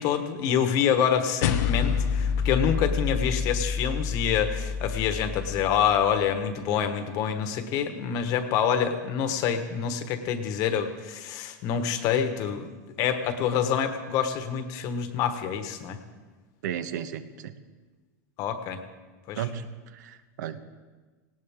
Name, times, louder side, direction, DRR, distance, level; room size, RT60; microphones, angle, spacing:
voice 1, 0.0-12.7 13.0-16.0 18.4-18.8 19.3-19.4, left 8 dB, 40° left, 8 dB, 1.2 m, -26 dB
sound 1, 1.4-6.1, left 6 dB, 65° left, 1.1 m, -28 dB
voice 2, 16.6-17.5 19.4-20.6, right 9 dB, 75° right, 11 dB, 1.0 m, -34 dB
18.5 x 17.5 x 3.6 m, 1.3 s
supercardioid pair, 165°, 10 cm